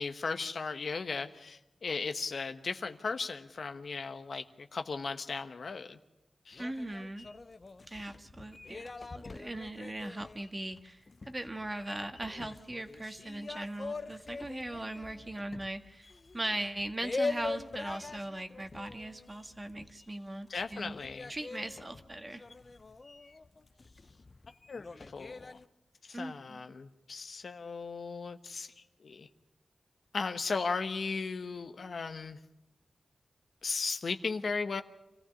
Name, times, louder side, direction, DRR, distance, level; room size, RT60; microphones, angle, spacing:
voice 1, 0.0-6.0 6.5-6.6 20.5-21.3 24.7-25.6 26.0-29.3 30.1-32.4 33.6-34.8, left 4 dB, 70° left, 8 dB, 1.1 m, -36 dB
sound 1, 6.5-20.3 20.6-25.7, left 3 dB, 45° left, 0.8 m, -43 dB
voice 2, 6.6-7.3 7.9-11.0 11.3-20.9 21.3-22.4 26.1-26.6, right 1 dB, 25° right, 7 dB, 1.7 m, -39 dB
26.5 x 15.0 x 8.3 m, 0.95 s
cardioid pair, 50°, 0 cm